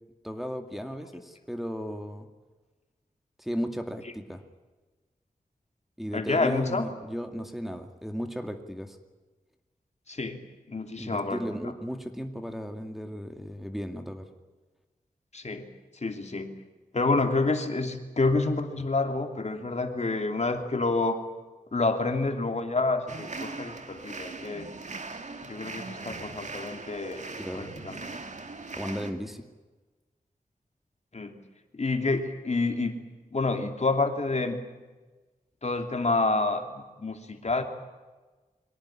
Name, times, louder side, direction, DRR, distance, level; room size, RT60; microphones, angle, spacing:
voice 1, 0.2-2.3 3.4-4.4 6.0-9.0 11.0-14.3 27.4-27.7 28.8-29.4, equal, ahead, 5 dB, 2.3 m, -35 dB
voice 2, 6.1-6.8 10.1-10.4 10.7-11.4 15.3-15.7 16.0-16.5 16.9-21.2 21.7-24.7 25.4-28.0 31.1-31.4 31.7-33.0 33.3-34.6 35.6-37.6, left 3 dB, 50° left, 5 dB, 2.8 m, -28 dB
sound 1, 23.1-29.1, right 3 dB, 55° right, 2.4 m, -40 dB
24.0 x 18.0 x 10.0 m, 1.2 s
wide cardioid pair, 80°, 15 cm